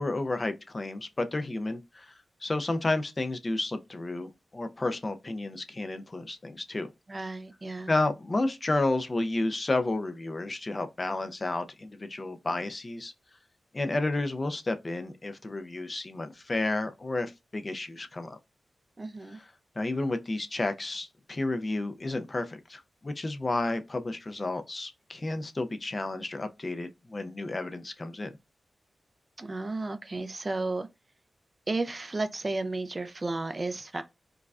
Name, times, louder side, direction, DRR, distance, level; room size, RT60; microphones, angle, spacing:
voice 1, 0.0-2.1 2.4-6.9 7.9-13.1 13.7-18.4 19.3-19.5 19.8-28.3, left 2 dB, 30° left, 0.4 m, -31 dB
voice 2, 7.1-7.9 19.0-19.4 29.4-30.9 31.7-34.0, right 2 dB, 30° right, 0.3 m, -33 dB
4.7 x 2.2 x 2.4 m
wide cardioid pair, 100°, 0 cm